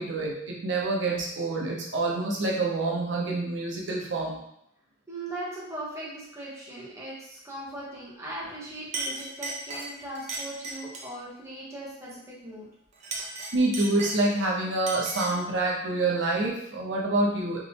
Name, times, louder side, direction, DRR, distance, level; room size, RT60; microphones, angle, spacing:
voice 1, 0.0-4.4 13.5-17.6, right 2 dB, 85° right, -2 dB, 0.8 m, -27 dB
voice 2, 5.1-12.7, right 1 dB, 15° right, -6 dB, 1.1 m, -39 dB
Chink clink, 8.4-8.6 8.9-11.2 12.9-14.5 14.9-15.5, right 3 dB, 40° right, 0.6 m, -36 dB
3.7 x 3.0 x 2.9 m, 0.74 s
head